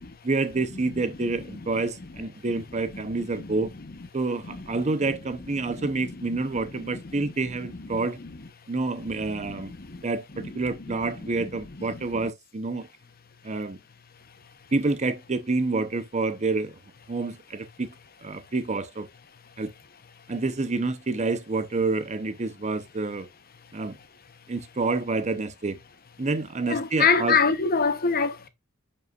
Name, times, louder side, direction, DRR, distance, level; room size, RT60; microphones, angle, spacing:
voice 1, 0.2-3.7 4.1-8.2 8.7-9.7 10.0-12.9 13.4-13.8 14.7-16.7 17.1-17.9 18.2-19.1 19.6-19.7 20.3-23.3 23.7-23.9 24.5-25.8 26.2-27.4, right 3 dB, 35° right, 0.7 m, -28 dB
voice 2, 26.7-28.5, left 5 dB, 45° left, 0.9 m, -23 dB
9.3 x 5.4 x 2.4 m
head